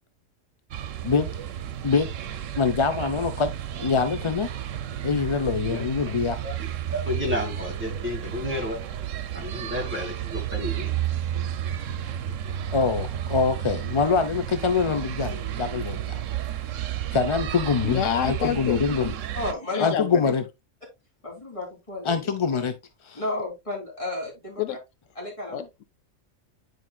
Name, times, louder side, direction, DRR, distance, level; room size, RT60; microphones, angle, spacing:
sound 1, 0.7-19.5, right 11 dB, 80° right, 1.0 m, -32 dB
voice 1, 2.6-4.5 5.0-6.4 12.7-16.2 17.1-19.1 19.8-20.4 22.0-22.7 23.0-23.2, left 5 dB, 45° left, 0.4 m, -24 dB
voice 2, 6.9-8.8 9.3-10.9 12.2-12.8, left 1 dB, 10° right, 2.2 m, -32 dB
voice 3, 17.8-18.8 19.7-20.3 24.6-24.8 25.5-25.8, left 10 dB, 80° left, 1.0 m, -28 dB
voice 4, 19.3-19.9 21.2-22.2 23.2-24.6 25.2-25.7, left 2 dB, 25° left, 3.4 m, -32 dB
9.8 x 4.8 x 2.3 m
omnidirectional pair, 1.3 m